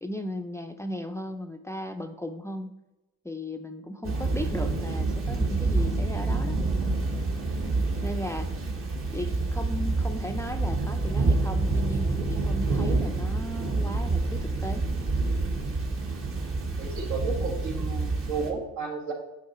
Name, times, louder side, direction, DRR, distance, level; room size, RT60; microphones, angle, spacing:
voice 1, 0.0-2.7 3.2-6.6 8.0-8.5 9.1-14.9, left 1 dB, 10° left, 6 dB, 0.4 m, -36 dB
Thunder / Rain, 4.0-18.5, right 3 dB, 45° right, 1.3 m, -27 dB
voice 2, 16.8-19.1, right 4 dB, 70° right, -2 dB, 1.9 m, -33 dB
8.7 x 3.8 x 4.2 m, 0.96 s
cardioid pair, 90°, 30 cm